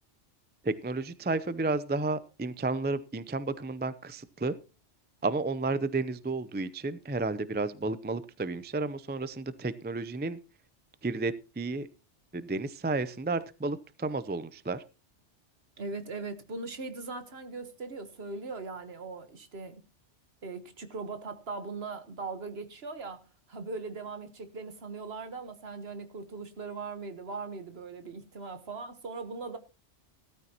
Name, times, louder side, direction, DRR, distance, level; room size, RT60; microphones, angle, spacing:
voice 1, 0.6-4.5 5.2-10.4 11.0-11.9 12.3-14.8, right 3 dB, 15° right, 0.3 m, -32 dB
voice 2, 15.8-19.8 20.4-23.2 23.5-29.6, right 3 dB, 60° right, 1.5 m, -39 dB
15.5 x 13.5 x 2.9 m
omnidirectional pair, 1.2 m